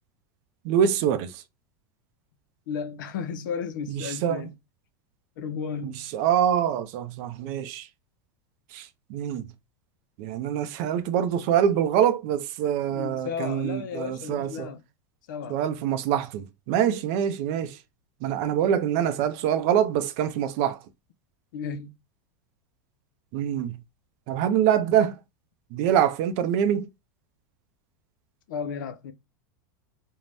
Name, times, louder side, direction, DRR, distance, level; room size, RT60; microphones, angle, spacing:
voice 1, 0.6-1.4 3.9-4.5 5.8-7.9 8.7-9.5 10.2-14.7 15.5-17.8 18.2-20.8 23.3-23.8 24.3-25.2 25.7-26.9, right 9 dB, 50° right, 0.5 m, -25 dB
voice 2, 2.7-4.5 5.4-6.1 12.9-14.8 15.3-15.6 21.5-21.9 28.5-29.1, left 6 dB, 80° left, 0.5 m, -34 dB
2.6 x 2.1 x 3.2 m
supercardioid pair, 135°, 11 cm